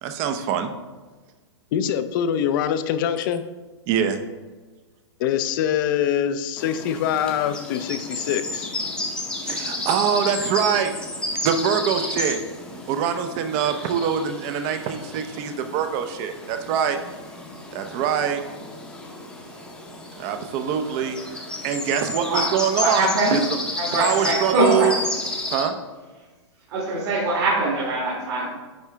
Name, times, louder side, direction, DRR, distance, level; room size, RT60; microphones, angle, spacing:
voice 1, 0.0-0.7 3.9-4.2 9.4-10.9 11.4-12.4 12.7-17.0 17.7-18.4 20.2-21.2 21.6-23.4 23.9-24.9 25.5-25.7, right 8 dB, 35° right, 0.6 m, -24 dB
voice 2, 1.7-3.4 5.2-8.7, left 9 dB, 45° left, 0.5 m, -24 dB
sound 1, 6.6-25.6, left 2 dB, 5° left, 0.7 m, -32 dB
voice 3, 22.8-23.4 23.8-24.9 26.7-28.6, right 2 dB, 55° right, 2.0 m, -23 dB
9.5 x 3.6 x 3.4 m
hypercardioid pair, 140°, 15 cm